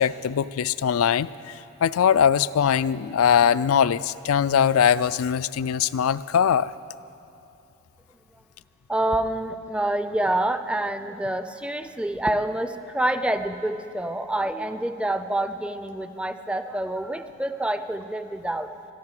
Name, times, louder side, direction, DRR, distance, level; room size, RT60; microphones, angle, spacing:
voice 1, 0.0-6.7, left 8 dB, 90° left, 16 dB, 0.4 m, -21 dB
voice 2, 8.9-18.8, right 1 dB, 5° right, 10 dB, 0.4 m, -27 dB
21.5 x 13.0 x 4.8 m, 2.8 s
head